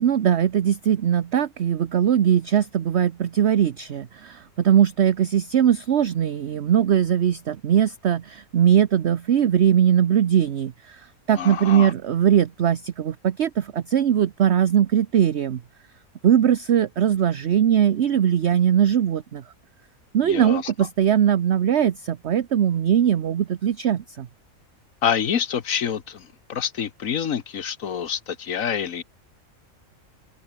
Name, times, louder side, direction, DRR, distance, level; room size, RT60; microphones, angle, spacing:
voice 1, 0.0-15.6 16.2-19.4 20.1-24.3, right 9 dB, 55° right, 1.0 m, -20 dB
voice 2, 11.3-11.9 20.2-20.7 25.0-29.0, left 8 dB, 65° left, 1.5 m, -27 dB
omnidirectional pair, 1.5 m